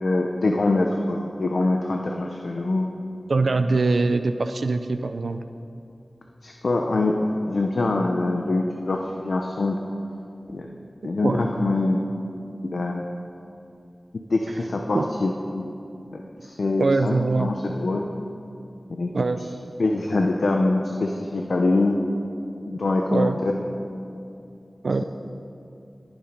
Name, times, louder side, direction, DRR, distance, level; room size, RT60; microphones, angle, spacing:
voice 1, 0.0-2.9 6.4-9.8 10.5-10.7 11.0-12.0 12.7-13.0 14.3-15.7 16.1-18.0 19.0-19.1 19.8-22.0 22.6-23.6, left 2 dB, 85° left, 1 dB, 0.8 m, -24 dB
voice 2, 3.3-5.4 11.2-11.5 14.9-15.1 16.8-17.5 19.1-19.4 23.1-23.4 24.8-25.0, right 3 dB, 80° right, 9 dB, 0.5 m, -23 dB
20.0 x 7.3 x 5.2 m, 2.6 s
wide cardioid pair, 60°, 0 cm